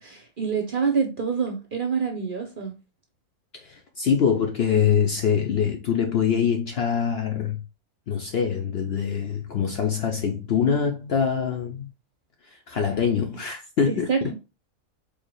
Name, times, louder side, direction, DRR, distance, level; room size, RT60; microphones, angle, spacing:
voice 1, 0.0-2.7 13.9-14.3, right 6 dB, 45° right, 0.8 m, -26 dB
voice 2, 3.5-7.6 8.1-11.9 12.4-14.3, left 7 dB, 55° left, 0.7 m, -24 dB
4.7 x 3.2 x 2.2 m
omnidirectional pair, 1.5 m